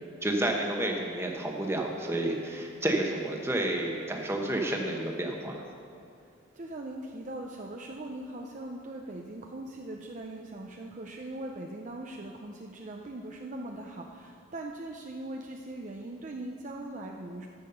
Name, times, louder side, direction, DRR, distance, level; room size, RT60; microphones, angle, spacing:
voice 1, 0.2-5.6, right 1 dB, 10° right, 1 dB, 1.1 m, -30 dB
voice 2, 6.5-17.5, right 1 dB, 35° right, 1 dB, 0.5 m, -40 dB
10.5 x 7.3 x 6.9 m, 2.4 s
head